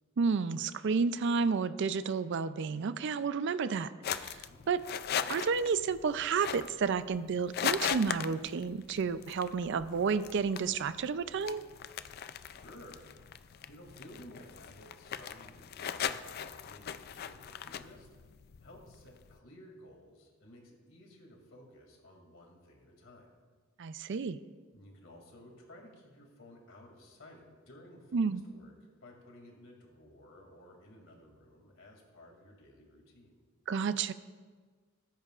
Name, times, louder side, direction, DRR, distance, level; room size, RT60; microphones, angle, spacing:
voice 1, 0.2-3.9 4.2-4.4 4.7-4.8 5.3-11.6 23.8-24.4 28.1-28.4 33.7-34.1, right 5 dB, 60° right, 14 dB, 0.4 m, -31 dB
sound 1, 4.0-19.4, left 8 dB, 50° left, 0.4 m, -39 dB
voice 2, 4.3-4.7 12.4-13.1 13.7-18.1 18.6-23.3 24.7-28.7 29.0-33.3, left 1 dB, 65° left, 1 dB, 2.5 m, -55 dB
20.5 x 10.5 x 2.4 m, 1.5 s
head